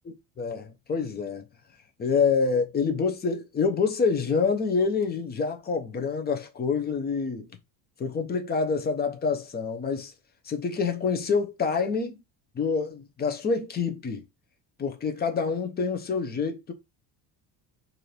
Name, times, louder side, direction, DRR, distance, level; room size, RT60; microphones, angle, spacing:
voice 1, 0.0-1.5 2.0-7.5 8.0-10.1 10.4-12.2 12.5-14.2 14.8-16.7, left 5 dB, 20° left, 0.7 m, -27 dB
4.3 x 2.7 x 3.2 m
cardioid pair, 155°, 43 cm